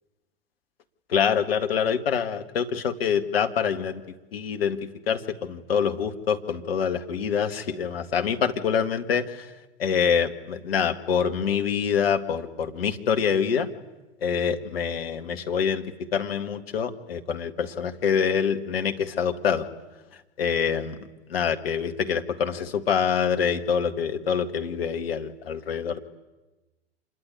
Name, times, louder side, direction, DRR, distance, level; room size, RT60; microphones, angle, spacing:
voice 1, 1.1-4.0 4.3-9.5 9.8-13.7 14.2-19.7 20.4-20.9 21.3-26.0, left 7 dB, 65° left, 7 dB, 2.0 m, -25 dB
26.5 x 21.0 x 9.4 m, 1.1 s
figure-of-eight pair, 90°, 32 cm